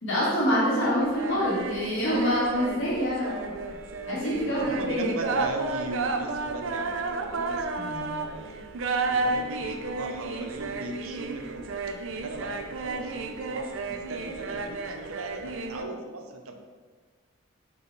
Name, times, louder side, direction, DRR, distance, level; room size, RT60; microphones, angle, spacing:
voice 1, 0.0-3.6 4.1-5.1 7.8-8.2, equal, 60° left, -8 dB, 1.7 m, -26 dB
sound 1, 1.0-15.8, right 3 dB, 60° right, 0.5 m, -32 dB
voice 2, 4.5-8.6 9.1-16.5, right 2 dB, 90° right, 5 dB, 0.7 m, -38 dB
5.7 x 4.2 x 3.9 m, 1.5 s
head